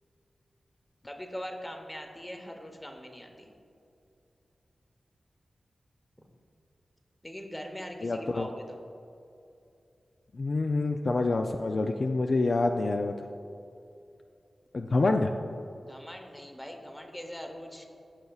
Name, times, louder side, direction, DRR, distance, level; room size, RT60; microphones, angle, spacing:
voice 1, 1.0-3.5 7.2-8.8 15.8-17.9, equal, 10° left, 4 dB, 0.9 m, -41 dB
voice 2, 8.0-8.5 10.4-13.1 14.7-15.3, left 3 dB, 50° left, 4 dB, 0.3 m, -27 dB
14.5 x 6.5 x 2.4 m, 2.6 s
wide cardioid pair, 100°, 0 cm